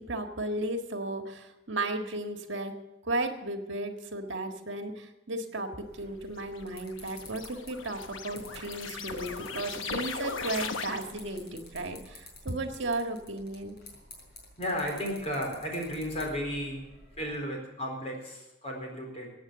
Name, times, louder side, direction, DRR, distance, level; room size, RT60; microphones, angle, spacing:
voice 1, 0.0-2.8 3.1-13.8, right 2 dB, 65° right, 5 dB, 1.7 m, -34 dB
sound 1, 5.8-17.4, left 2 dB, 55° left, 4.4 m, -51 dB
sound 2, 6.4-11.4, left 5 dB, 75° left, 1.0 m, -38 dB
voice 2, 14.6-16.8 17.2-19.3, equal, 35° left, 0 dB, 4.3 m, -34 dB
15.0 x 9.0 x 7.6 m, 0.94 s
head